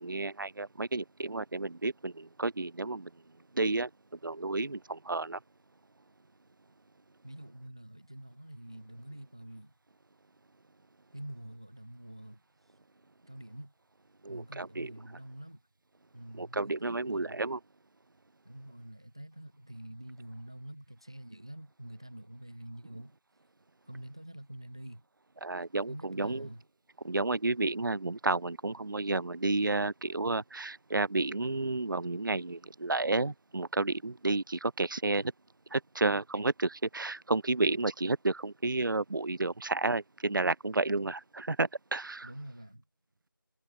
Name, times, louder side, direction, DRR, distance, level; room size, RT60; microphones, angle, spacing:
voice 1, 0.0-3.1 3.5-3.9 4.2-5.4 14.2-14.9 16.4-17.6 25.4-26.5 27.0-35.3 35.7-42.3, right 2 dB, 65° right, 0.5 m, -31 dB
voice 2, 7.2-9.7 11.1-12.7 13.2-13.7 14.3-15.6 16.1-17.4 18.4-23.2 23.9-25.0 25.9-26.6 42.2-42.8, right 1 dB, 15° right, 0.6 m, -46 dB
figure-of-eight pair, 170°, 12 cm